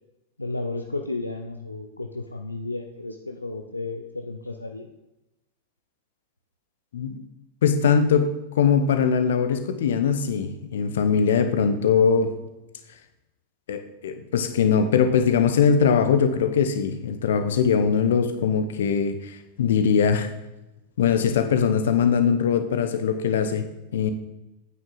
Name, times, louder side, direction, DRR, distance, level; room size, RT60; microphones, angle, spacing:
voice 1, 0.4-4.9, left 2 dB, 85° left, 4 dB, 0.6 m, -33 dB
voice 2, 7.6-8.3 8.5-12.3 13.7-20.3 21.0-23.7 23.9-24.1, left 6 dB, 60° left, 8 dB, 1.1 m, -21 dB
9.3 x 9.1 x 4.1 m, 0.96 s
figure-of-eight pair, 90°, 0 cm